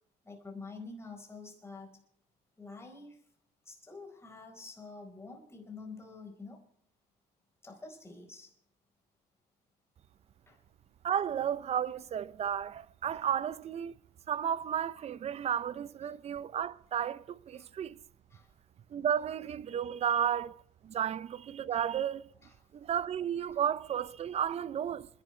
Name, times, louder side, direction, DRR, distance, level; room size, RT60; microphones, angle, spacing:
voice 1, 0.2-2.0 2.6-3.2 3.6-6.6 7.6-8.5 10.5-10.6 16.0-16.1 17.5-17.7 18.3-18.5 21.7-21.8 22.4-22.7 23.5-23.6, left 3 dB, 15° left, 4.4 m, -48 dB
voice 2, 11.0-13.9 14.3-18.0 18.9-20.6 20.8-22.3 22.7-25.1, right 9 dB, 40° right, 0.6 m, -33 dB
28.0 x 11.0 x 3.2 m
cardioid pair, 110°, 17 cm